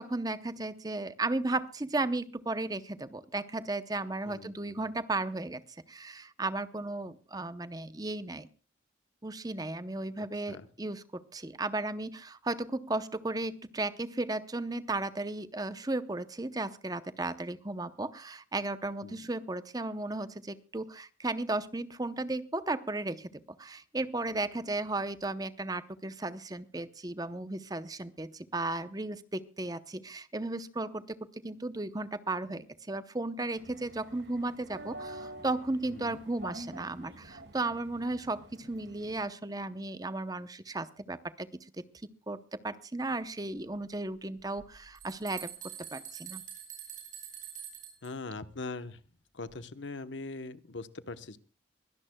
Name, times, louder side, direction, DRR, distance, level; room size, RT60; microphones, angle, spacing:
voice 1, 0.0-5.6 5.9-8.5 9.2-23.3 23.6-41.5 42.3-45.5 45.9-46.4, right 2 dB, 20° right, 13 dB, 0.7 m, -35 dB
voice 2, 4.3-4.9 10.5-10.7 19.0-19.3 35.9-36.2 48.0-49.0 49.3-51.4, left 3 dB, 80° left, 12 dB, 1.0 m, -41 dB
sound 1, 33.6-39.2, right 1 dB, 65° right, 2.1 m, -48 dB
sound 2, 44.6-44.7 45.0-48.1, right 9 dB, 45° right, 7.9 m, -45 dB
23.5 x 17.5 x 2.3 m, 0.36 s
head